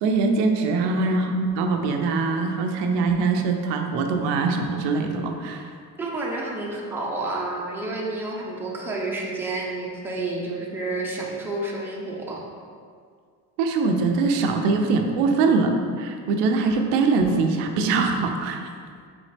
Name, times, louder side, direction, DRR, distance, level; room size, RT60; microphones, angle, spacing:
voice 1, 0.0-5.7 13.6-18.7, right 4 dB, 80° right, 4 dB, 0.6 m, -22 dB
voice 2, 6.0-12.4, right 2 dB, 5° right, -3 dB, 0.6 m, -30 dB
4.1 x 3.4 x 3.3 m, 2.1 s
cardioid pair, 105°, 42 cm